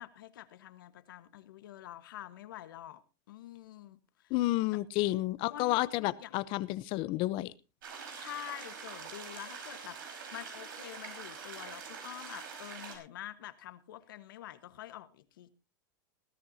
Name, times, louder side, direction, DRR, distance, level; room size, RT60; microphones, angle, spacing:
voice 1, 0.0-3.0 3.3-4.3 5.5-6.4 8.2-10.0 10.3-15.5, left 13 dB, 85° left, 1.4 m, -47 dB
voice 2, 4.3-7.5, left 18 dB, 50° left, 0.8 m, -31 dB
sound 1, 7.8-13.0, right 6 dB, 85° right, 4.9 m, -45 dB
20.0 x 13.5 x 2.8 m
supercardioid pair, 130°, 11 cm